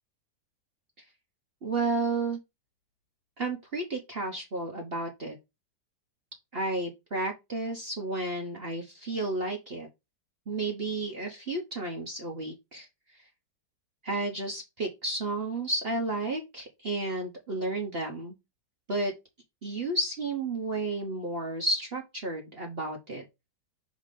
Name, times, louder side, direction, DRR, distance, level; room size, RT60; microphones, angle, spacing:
voice 1, 1.6-2.4 3.4-5.4 6.5-9.9 10.5-12.9 14.0-18.3 18.9-19.1 19.6-23.2, right 2 dB, 40° right, 1 dB, 1.1 m, -32 dB
5.8 x 3.2 x 5.0 m, 0.23 s
omnidirectional pair, 1.7 m